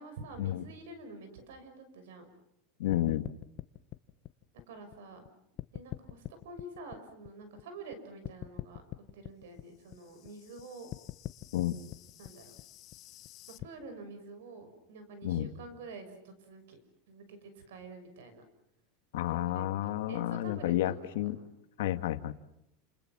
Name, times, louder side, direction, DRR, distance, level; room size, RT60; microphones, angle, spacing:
voice 1, 0.0-2.3 4.7-5.2 5.7-8.8 9.1-10.9 12.2-12.5 13.6-16.8 17.1-18.4 19.3-21.4, right 3 dB, 90° right, 9 dB, 6.3 m, -48 dB
voice 2, 2.8-3.3 11.5-11.8 15.2-15.5 19.1-21.4 21.8-22.3, left 13 dB, 85° left, 10 dB, 1.7 m, -31 dB
sound 1, 2.9-5.3 5.6-7.9 8.2-13.6, left 15 dB, 40° left, 1.0 m, -44 dB
30.0 x 28.5 x 6.1 m, 0.80 s
supercardioid pair, 150°, 0 cm